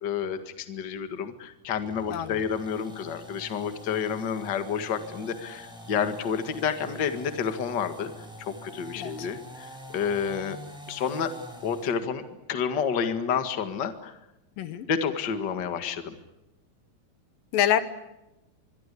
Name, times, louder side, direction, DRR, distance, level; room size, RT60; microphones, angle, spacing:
voice 1, 0.0-8.1 8.4-10.6 10.9-11.3 11.6-12.2 12.5-14.1 14.9-16.2, left 7 dB, 40° left, 9 dB, 1.9 m, -29 dB
sound 1, 1.7-12.0, equal, ahead, 6.2 m, -45 dB
voice 2, 2.1-2.4 9.0-9.3 14.6-14.9 17.5-17.8, left 10 dB, 75° left, 12 dB, 2.7 m, -26 dB
24.5 x 24.0 x 8.5 m, 0.94 s
omnidirectional pair, 4.1 m